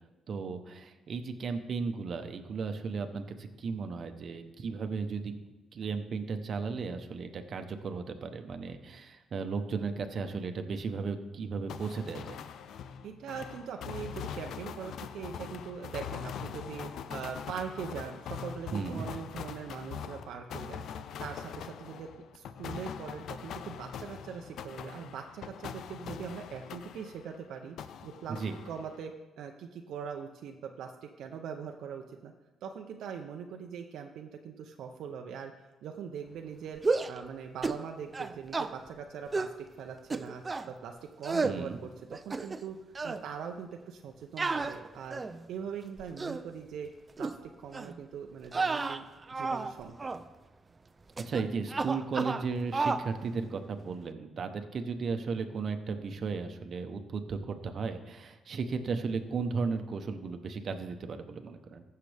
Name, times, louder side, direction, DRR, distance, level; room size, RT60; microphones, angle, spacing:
voice 1, 0.3-5.3 5.7-12.4 18.7-19.1 28.3-28.6 41.4-41.8 51.2-61.8, right 5 dB, 55° right, 7 dB, 0.9 m, -35 dB
sound 1, 11.7-27.4 27.8-29.1, left 8 dB, 75° left, 0.5 m, -42 dB
voice 2, 13.0-20.8 21.2-27.8 28.0-28.4 28.6-32.3 32.6-35.5 35.8-36.8 37.1-41.9 42.3-42.8 43.0-45.2 45.5-46.9 47.2-47.3 47.6-49.0 49.3-50.1, right 7 dB, 75° right, 3 dB, 0.6 m, -41 dB
sound 2, 36.8-37.2 37.6-37.8 38.1-38.7 39.3-39.6 40.1-40.7 41.2-41.6 42.1-42.7 42.9-43.2 44.4-45.4 46.0-46.4 47.2-47.3 47.7-47.9 48.5-49.7 50.0-50.2 51.2-51.4 51.7-52.4 52.7-53.1, right 3 dB, 30° right, 0.5 m, -32 dB
15.0 x 6.7 x 3.4 m, 1.1 s
cardioid pair, 90°, 0 cm